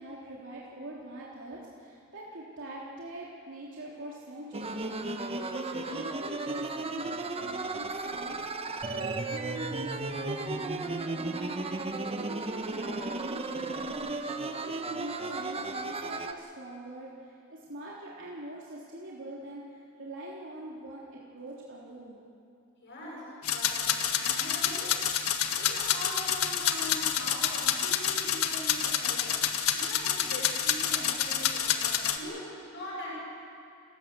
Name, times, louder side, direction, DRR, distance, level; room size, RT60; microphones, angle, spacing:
voice 1, 0.0-8.4 8.9-22.2, right 1 dB, 60° right, -5 dB, 3.5 m, -43 dB
sound 1, 4.5-16.3, right 3 dB, 25° right, 1.1 m, -34 dB
voice 2, 22.8-33.1, left 1 dB, 55° left, -6 dB, 7.0 m, -42 dB
sound 2, 23.4-32.2, left 9 dB, 85° left, 1.6 m, -28 dB
30.0 x 15.0 x 7.8 m, 2.7 s
head